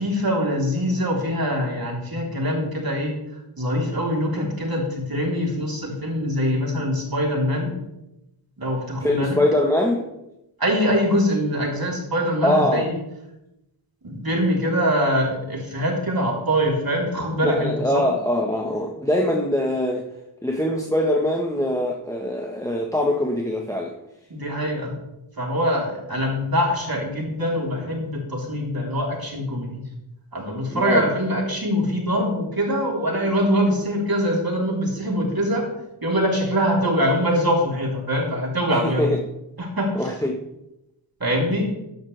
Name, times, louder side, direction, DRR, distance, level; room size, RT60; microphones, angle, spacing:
voice 1, 0.0-3.1 3.6-7.7 8.6-9.4 10.6-13.0 14.0-18.1 24.3-24.9 25.4-29.8 30.3-35.7 36.0-39.1 39.6-40.1 41.2-41.7, equal, 50° right, -2 dB, 3.7 m, -23 dB
voice 2, 9.0-10.0 12.4-12.9 17.4-20.1 20.4-24.0 30.7-31.1 38.7-39.2 39.9-40.4, left 1 dB, 5° left, 1 dB, 1.2 m, -23 dB
14.0 x 9.1 x 3.4 m, 0.91 s
wide cardioid pair, 50°, 47 cm